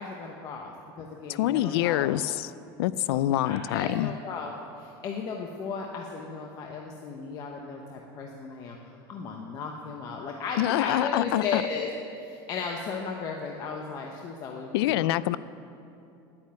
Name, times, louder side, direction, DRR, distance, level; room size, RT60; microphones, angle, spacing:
voice 1, 0.0-2.1 3.1-8.8 9.1-11.9 12.2-15.1, left 5 dB, 30° left, 1 dB, 0.8 m, -35 dB
voice 2, 1.3-2.5 2.8-4.1 10.6-11.6 14.7-15.4, left 14 dB, 80° left, 17 dB, 0.4 m, -25 dB
9.8 x 8.7 x 9.5 m, 2.7 s
supercardioid pair, 170°, 13 cm